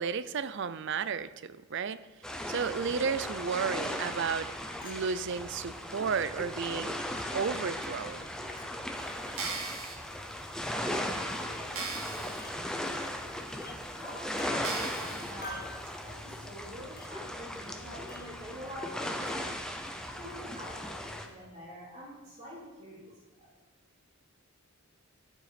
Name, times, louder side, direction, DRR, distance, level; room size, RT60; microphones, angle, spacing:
voice 1, 0.0-2.1 2.5-4.5 4.8-7.0 7.3-8.3, right 6 dB, 55° right, 15 dB, 0.4 m, -33 dB
sound 1, 2.2-21.3, left 1 dB, 5° left, 0.7 m, -37 dB
Chink clink, 4.8-5.0 5.9-6.0 7.2-7.3 8.5-8.7 9.6-9.8 10.9-11.2 12.4-12.6 13.6-13.8 14.4-14.5 15.4-15.8 17.0-17.1 18.1-18.3 19.3-19.4, left 2 dB, 40° left, 1.5 m, -46 dB
sound 2, 9.2-9.9 10.6-10.7 11.2-11.3 11.7-12.4 12.9-13.0 13.7-13.8 14.6-15.3 15.9-16.0, right 4 dB, 70° right, 1.8 m, -38 dB
voice 2, 11.3-13.2 13.9-15.7 16.0-19.5 20.1-23.5, equal, 30° right, -7 dB, 3.6 m, -47 dB
11.5 x 7.8 x 5.1 m, 1.2 s
head